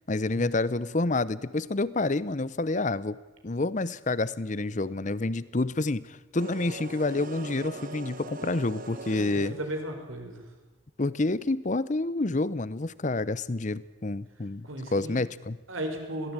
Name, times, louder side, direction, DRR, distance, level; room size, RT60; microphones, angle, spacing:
voice 1, 0.1-3.2 3.4-9.5 11.0-15.6, left 2 dB, 40° left, 18 dB, 0.7 m, -28 dB
sound 1, 6.4-9.8, right 2 dB, 45° right, 1.2 m, -41 dB
voice 2, 9.5-10.4 14.6-15.2 15.7-16.3, right 1 dB, 90° right, 4 dB, 4.8 m, -35 dB
22.0 x 17.0 x 8.9 m, 1.2 s
head